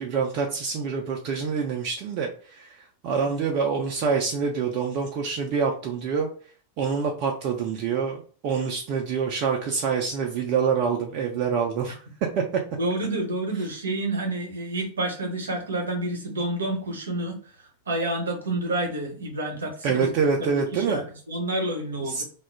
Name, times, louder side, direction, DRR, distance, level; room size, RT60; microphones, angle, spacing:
voice 1, 0.0-6.3 6.8-12.0 12.4-12.5 19.8-21.0 22.0-22.2, right 6 dB, 40° right, 1 dB, 0.4 m, -26 dB
voice 2, 12.8-17.4 17.9-20.1 20.4-22.2, right 1 dB, 70° right, 2 dB, 0.7 m, -29 dB
2.3 x 2.0 x 3.2 m, 0.42 s
figure-of-eight pair, 90°, 0 cm